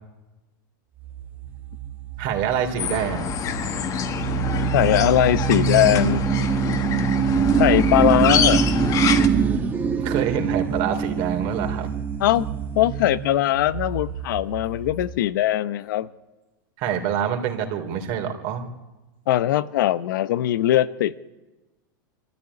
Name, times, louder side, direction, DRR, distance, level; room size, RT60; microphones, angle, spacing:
sound 1, 1.0-15.2, right 7 dB, 15° right, 2.0 m, -24 dB
voice 1, 2.2-3.3 10.0-11.9 16.8-18.7, right 8 dB, 50° right, 3.2 m, -26 dB
sound 2, 2.8-9.3, left 8 dB, 30° left, 1.6 m, -26 dB
voice 2, 4.7-6.2 7.6-8.7 12.2-12.5 12.7-16.1 19.3-21.3, left 13 dB, 70° left, 0.9 m, -20 dB
24.0 x 13.5 x 9.8 m
supercardioid pair, 135°, 11 cm